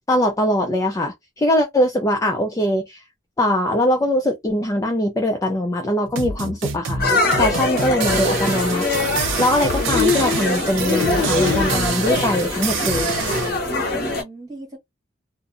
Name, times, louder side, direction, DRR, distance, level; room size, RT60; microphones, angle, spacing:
voice 1, 0.1-3.0 3.4-7.0 7.4-13.1, left 1 dB, 15° left, 0.3 m, -22 dB
sound 1, 6.1-13.5, right 4 dB, 70° right, 0.5 m, -26 dB
sound 2, 7.0-14.2, left 3 dB, 45° left, 0.8 m, -22 dB
voice 2, 13.9-14.8, right 3 dB, 15° right, 1.4 m, -40 dB
2.6 x 2.0 x 2.4 m
head